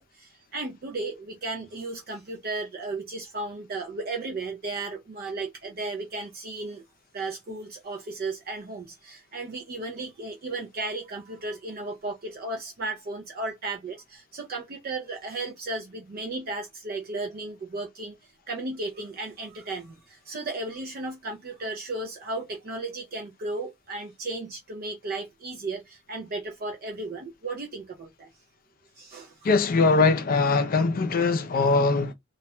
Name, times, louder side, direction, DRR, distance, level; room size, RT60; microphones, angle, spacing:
voice 1, 0.0-6.8 7.1-28.3 29.0-29.4, right 2 dB, 45° right, 0.4 m, -35 dB
voice 2, 29.4-32.1, left 3 dB, 40° left, 0.4 m, -21 dB
2.3 x 2.1 x 2.9 m
head